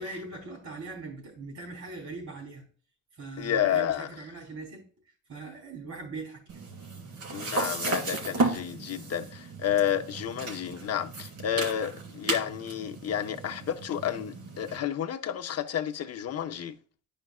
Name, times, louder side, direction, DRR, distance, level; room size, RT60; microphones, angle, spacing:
voice 1, 0.0-2.7 3.1-4.8 5.3-6.4, right 3 dB, 70° right, 3.7 m, -40 dB
voice 2, 3.4-4.1 7.3-16.8, left 9 dB, 55° left, 0.8 m, -30 dB
sound 1, 6.5-14.8, right 3 dB, 90° right, 2.3 m, -34 dB
11.0 x 5.2 x 2.4 m
cardioid pair, 90°, 30 cm